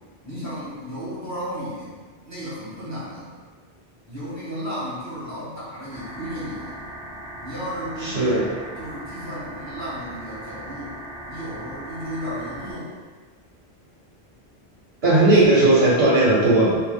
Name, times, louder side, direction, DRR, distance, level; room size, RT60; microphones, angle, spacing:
voice 1, 0.2-2.0 2.2-3.3 4.1-6.8 7.4-8.5 8.8-10.9 11.3-12.9, equal, 15° right, -11 dB, 1.4 m, -33 dB
sound 1, 5.9-12.7, right 1 dB, 55° right, 1.1 m, -38 dB
voice 2, 8.0-8.5 15.0-16.8, right 2 dB, 75° right, -7 dB, 1.1 m, -17 dB
3.1 x 2.2 x 3.5 m, 1.5 s
omnidirectional pair, 1.1 m